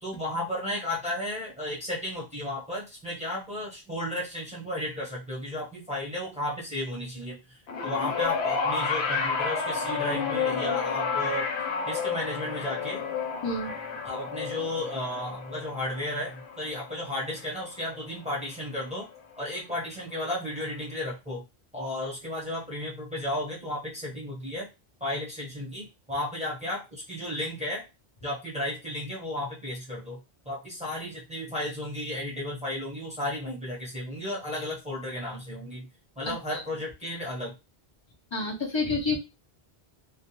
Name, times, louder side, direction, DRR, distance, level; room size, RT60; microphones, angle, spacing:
voice 1, 0.0-7.6 7.8-11.5 11.9-13.0 14.0-19.1 19.4-21.4 21.7-24.6 25.0-27.8 28.2-35.9 36.2-37.5, left 1 dB, 5° right, -5 dB, 0.9 m, -33 dB
sound 1, 7.7-18.1 19.2-19.3, left 5 dB, 85° left, 0.9 m, -31 dB
voice 2, 13.4-13.7 36.2-36.6 38.3-39.2, left 3 dB, 35° left, 0 dB, 0.5 m, -29 dB
2.3 x 2.2 x 2.9 m, 0.27 s
omnidirectional pair, 1.1 m